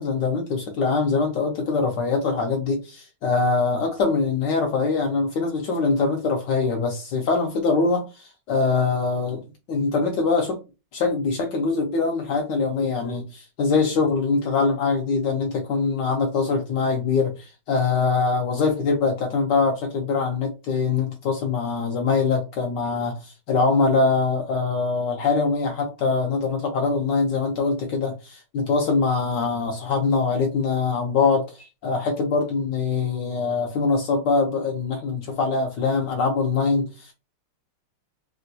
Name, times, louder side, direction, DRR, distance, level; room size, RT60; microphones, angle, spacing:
voice 1, 0.0-10.6 10.9-37.1, left 4 dB, 75° left, 1.1 m, -23 dB
3.7 x 2.2 x 2.6 m
omnidirectional pair, 2.3 m